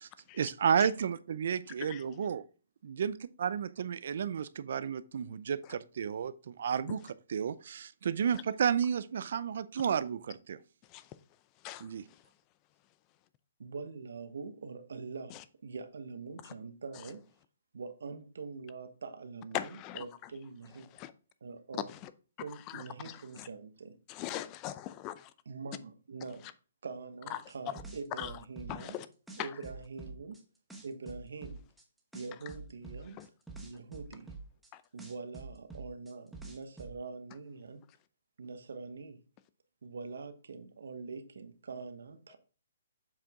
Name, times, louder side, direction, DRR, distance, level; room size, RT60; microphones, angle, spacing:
voice 1, 0.3-2.4 2.8-7.0 7.3-10.6 11.8-12.0, right 7 dB, 65° right, 0.5 m, -32 dB
voice 2, 11.6-12.3 15.3-15.4 16.4-16.5 19.5-20.3 20.9-21.1 21.9-22.1 22.5-23.5 24.1-25.3 27.3-27.4 28.2-28.3 28.7-29.1 29.4-29.5 33.2-33.3 34.7-34.8, left 13 dB, 25° left, 0.5 m, -41 dB
voice 3, 13.6-17.3 17.7-20.9 21.4-21.9 22.4-24.0 25.5-26.5 26.8-29.0 29.4-30.4 30.8-31.6 32.1-33.2 33.6-34.3 34.9-37.8 38.4-39.2 39.8-42.4, right 4 dB, 80° right, 1.1 m, -44 dB
sound 1, 27.5-29.0 29.3-30.4 30.7-31.8 32.1-34.7 35.0-36.9, right 3 dB, 5° right, 1.1 m, -46 dB
7.6 x 4.6 x 3.6 m
hypercardioid pair, 155°, 0 cm